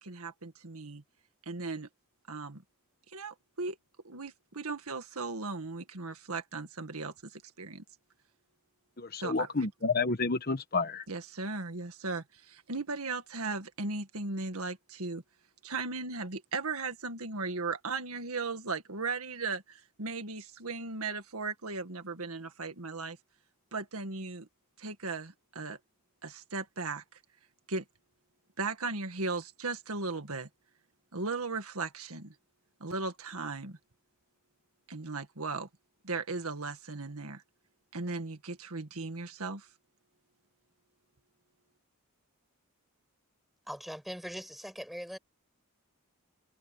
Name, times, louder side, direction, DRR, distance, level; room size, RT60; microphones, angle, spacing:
voice 1, 0.0-1.0 1.5-1.9 2.3-2.6 3.1-3.8 4.0-7.8 9.2-9.5 11.1-15.2 15.6-23.2 23.7-24.5 24.8-25.8 26.2-27.0 27.7-27.8 28.6-30.5 31.1-32.3 32.8-33.8 34.9-35.7 36.0-37.4 37.9-39.7, right 3 dB, 80° right, 1.9 m, -37 dB
voice 2, 9.0-11.0, left 4 dB, 45° left, 1.2 m, -30 dB
voice 3, 43.7-45.2, equal, ahead, 6.1 m, -41 dB
head